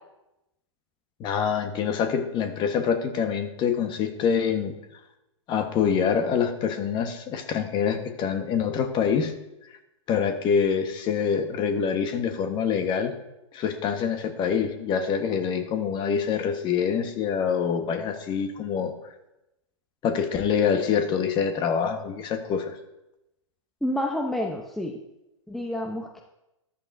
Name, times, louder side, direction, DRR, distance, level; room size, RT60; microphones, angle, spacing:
voice 1, 1.2-4.7 5.5-9.3 10.1-13.1 13.5-18.9 20.0-22.8, left 7 dB, 30° left, 7 dB, 1.3 m, -25 dB
voice 2, 23.8-25.0 25.5-26.2, left 1 dB, ahead, 2 dB, 0.8 m, -29 dB
13.5 x 11.5 x 2.7 m, 0.92 s
hypercardioid pair, 115°, 16 cm